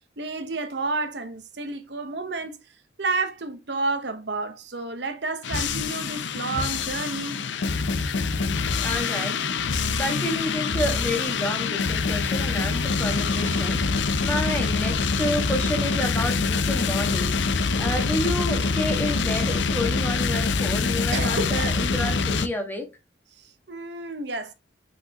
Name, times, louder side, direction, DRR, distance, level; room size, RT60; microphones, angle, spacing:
voice 1, 0.2-2.6 3.0-7.4 21.1-21.7 23.4-24.5, right 3 dB, 65° right, 1.1 m, -30 dB
sound 1, 5.4-22.5, left 4 dB, 75° left, 0.6 m, -25 dB
voice 2, 8.7-9.4 10.0-13.8 14.2-22.9, left 1 dB, 10° left, 1.6 m, -30 dB
6.1 x 5.3 x 2.9 m
head